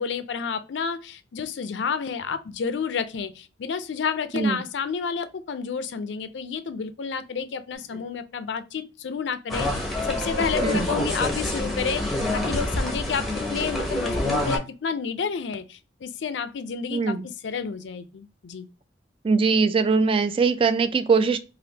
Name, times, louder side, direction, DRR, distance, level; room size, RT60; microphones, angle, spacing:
voice 1, 0.0-17.2 17.4-18.7, left 6 dB, 80° left, 0.4 m, -30 dB
sound 1, 7.7-8.0 10.1-11.7, left 1 dB, 75° right, 1.7 m, -38 dB
sound 2, 9.5-14.6, left 1 dB, ahead, 0.8 m, -27 dB
voice 2, 16.9-17.3 19.2-21.4, right 4 dB, 30° right, 0.3 m, -21 dB
3.3 x 2.4 x 2.7 m
head